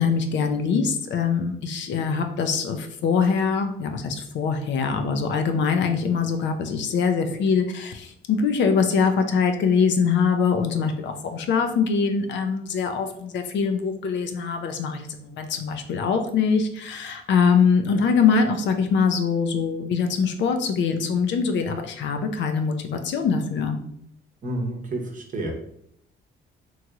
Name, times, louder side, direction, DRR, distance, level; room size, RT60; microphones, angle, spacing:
voice 1, 0.0-23.8, left 5 dB, 65° left, 7 dB, 0.4 m, -23 dB
voice 2, 24.4-25.6, right 1 dB, 40° right, 1 dB, 0.8 m, -29 dB
3.0 x 2.8 x 2.3 m, 0.70 s
cardioid pair, 90°, 20 cm